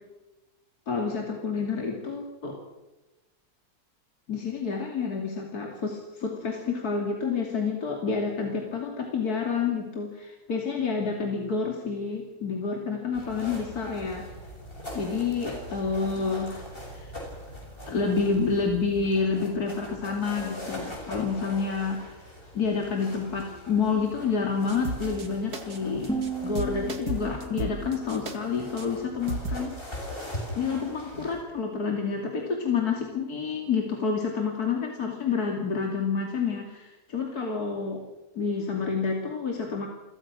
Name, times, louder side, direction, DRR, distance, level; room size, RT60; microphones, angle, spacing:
voice 1, 0.9-2.6 4.3-14.3 14.9-17.1 17.9-26.1 26.4-29.8 30.5-38.0 38.4-39.9, left 5 dB, 75° left, 1 dB, 3.2 m, -29 dB
sound 1, 13.1-31.4, equal, 35° left, 7.3 m, -41 dB
sound 2, 24.7-25.3 25.5-25.8 26.0-26.3 26.6-28.4 28.8-28.9 29.3-29.6, right 2 dB, 80° right, 2.7 m, -34 dB
sound 3, 26.1-29.1, right 2 dB, 5° left, 6.0 m, -36 dB
29.5 x 22.5 x 6.2 m, 1.1 s
omnidirectional pair, 1.7 m